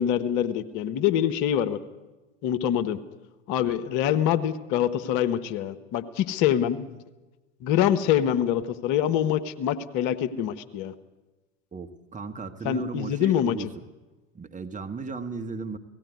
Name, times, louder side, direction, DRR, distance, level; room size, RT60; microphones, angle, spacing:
voice 1, 0.0-1.8 2.4-3.0 3.5-7.0 7.6-10.9 12.6-13.7, left 10 dB, 55° left, 11 dB, 1.2 m, -25 dB
voice 2, 11.7-13.8 14.3-15.8, right 4 dB, 20° right, 6 dB, 1.4 m, -36 dB
18.0 x 15.5 x 9.4 m, 1.2 s
hypercardioid pair, 85°, 38 cm